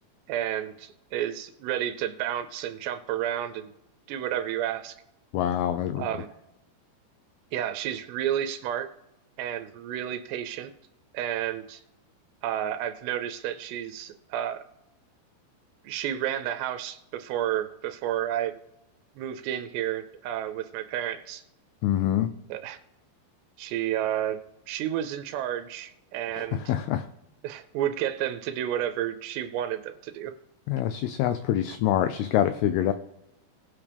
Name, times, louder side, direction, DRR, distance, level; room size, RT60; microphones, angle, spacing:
voice 1, 0.3-3.7 4.1-5.0 6.0-6.3 7.5-8.9 9.4-10.7 11.1-11.8 12.4-14.6 15.8-18.6 19.2-21.4 22.5-22.8 23.6-24.4 24.7-26.7 27.4-30.3, right 11 dB, 80° right, 10 dB, 2.6 m, -31 dB
voice 2, 5.3-6.0 21.8-22.3 26.4-27.0 30.7-32.9, left 11 dB, 85° left, 10 dB, 2.2 m, -25 dB
19.0 x 7.2 x 3.4 m, 0.90 s
omnidirectional pair, 5.1 m